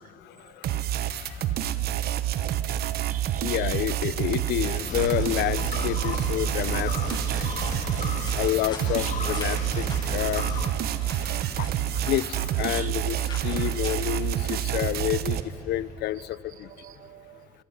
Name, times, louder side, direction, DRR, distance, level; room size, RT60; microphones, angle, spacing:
voice 1, 0.2-1.5 3.4-7.5 8.3-10.5 11.2-15.4 15.6-16.7, left 14 dB, 75° left, 18 dB, 0.6 m, -30 dB
sound 1, 0.6-15.4, right 12 dB, 70° right, 0.9 m, -28 dB
voice 2, 2.2-3.7 7.3-8.0 12.6-13.0 16.8-17.4, right 12 dB, 50° right, 20 dB, 0.4 m, -44 dB
sound 2, 4.9-10.7, left 6 dB, 45° left, 1.6 m, -35 dB
sound 3, 6.6-14.0, left 2 dB, 30° left, 7.0 m, -43 dB
26.0 x 25.0 x 5.9 m, 2.9 s
cardioid pair, 110°, 17 cm